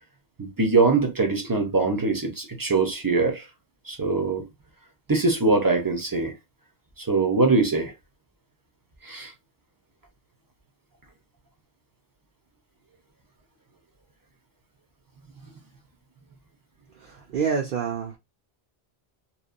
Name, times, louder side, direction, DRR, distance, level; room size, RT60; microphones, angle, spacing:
voice 1, 0.4-3.5 3.9-4.4 5.1-6.3 7.0-7.9 9.0-9.3, right 3 dB, 25° right, 0.5 m, -22 dB
voice 2, 16.9-18.2, right 6 dB, 60° right, 0.7 m, -28 dB
2.8 x 2.1 x 2.4 m
omnidirectional pair, 1.1 m